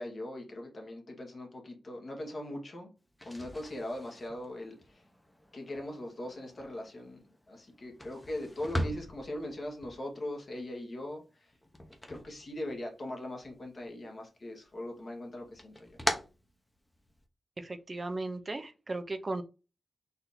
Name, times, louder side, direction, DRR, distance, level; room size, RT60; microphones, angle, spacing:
voice 1, 0.0-3.0 3.2-5.0 5.5-11.6 12.1-16.0, left 1 dB, 50° left, 1.6 m, -40 dB
sound 1, 3.1-13.1 13.4-14.3 14.6-17.3, equal, 15° left, 0.9 m, -41 dB
voice 2, 17.6-19.4, right 2 dB, 35° right, 0.5 m, -36 dB
4.2 x 2.7 x 4.0 m
wide cardioid pair, 80°, 0 cm